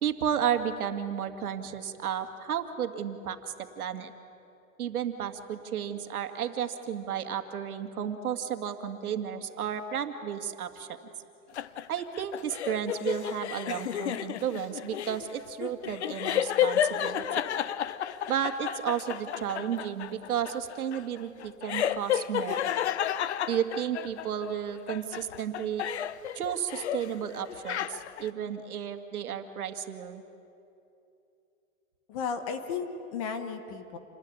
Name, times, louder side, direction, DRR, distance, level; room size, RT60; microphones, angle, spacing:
voice 1, 0.0-4.1 4.8-11.0 11.9-17.4 18.3-22.7 23.5-25.8 26.3-30.2, right 9 dB, 85° right, 7 dB, 2.3 m, -33 dB
sound 1, 11.5-24.5 24.9-27.2 27.4-28.3, left 10 dB, 50° left, 0.8 m, -32 dB
voice 2, 32.1-34.0, left 6 dB, 25° left, 8 dB, 1.3 m, -34 dB
28.0 x 21.0 x 9.9 m, 2.8 s
supercardioid pair, 180°, 43 cm